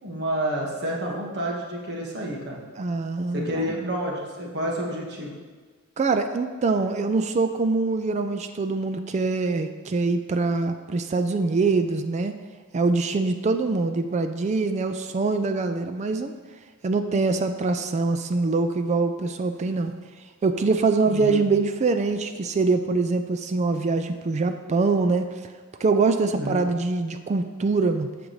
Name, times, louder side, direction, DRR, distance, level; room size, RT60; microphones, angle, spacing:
voice 1, 0.0-2.6 3.3-5.4 21.1-21.5 26.3-26.7, right 1 dB, 50° right, -2 dB, 1.6 m, -29 dB
voice 2, 2.8-3.9 6.0-12.3 12.7-16.3 16.8-19.9 20.4-25.5 25.8-28.1, right 3 dB, 30° right, 8 dB, 0.3 m, -24 dB
14.5 x 5.2 x 3.1 m, 1.4 s
head